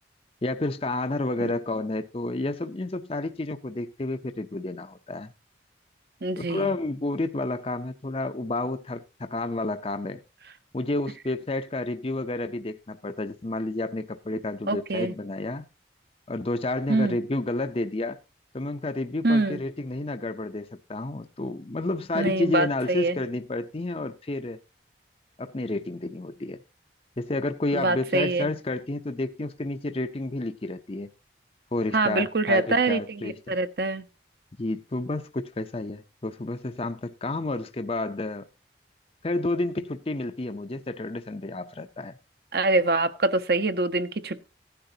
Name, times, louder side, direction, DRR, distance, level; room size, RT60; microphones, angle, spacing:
voice 1, 0.4-5.3 6.4-10.2 10.7-15.6 16.3-18.2 18.5-24.6 25.4-26.6 27.2-31.1 31.7-33.6 34.6-38.5 39.2-42.2, left 2 dB, 30° left, 0.6 m, -30 dB
voice 2, 6.2-6.7 14.7-15.1 16.9-17.2 19.2-19.6 22.1-23.2 27.7-28.5 31.9-34.0 42.5-44.5, right 2 dB, 55° right, 0.9 m, -25 dB
16.0 x 10.5 x 2.8 m
head